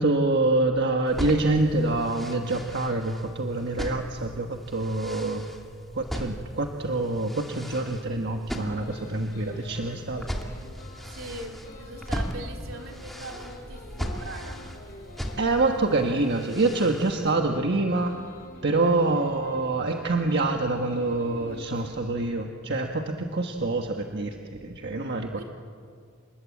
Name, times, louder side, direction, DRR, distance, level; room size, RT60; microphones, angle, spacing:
voice 1, 0.0-5.4 5.9-10.3 15.4-18.2 18.6-25.4, right 2 dB, 55° right, 3 dB, 1.4 m, -26 dB
sound 1, 1.1-17.3, equal, ahead, 2.4 m, -38 dB
sound 2, 8.5-21.9, left 1 dB, 45° left, 6.6 m, -47 dB
voice 2, 11.0-14.6 25.3-25.4, right 2 dB, 75° right, 2 dB, 3.4 m, -41 dB
28.0 x 20.5 x 8.5 m, 2.2 s
head